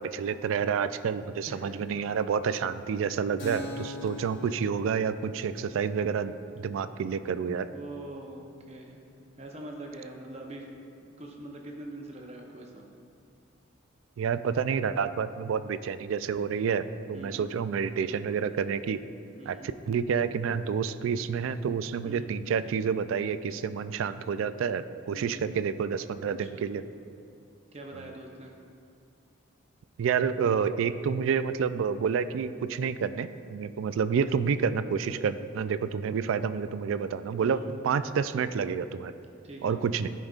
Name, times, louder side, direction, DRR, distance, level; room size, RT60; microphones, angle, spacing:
voice 1, 0.0-7.7 14.2-19.0 19.5-19.6 19.9-26.8 30.0-39.1 39.6-40.1, right 6 dB, 85° right, 12 dB, 0.3 m, -29 dB
Keyboard (musical), 3.4-10.7, left 1 dB, 60° left, 1.0 m, -46 dB
voice 2, 7.6-9.0 9.4-10.7 11.0-12.9 17.1-17.4 19.4-19.7 21.0-21.1 22.0-22.3 25.1-25.4 26.2-26.7 27.7-28.5 37.4-37.6 39.4-39.8, right 1 dB, 30° right, 0 dB, 0.7 m, -43 dB
13.5 x 5.2 x 2.4 m, 2.4 s
head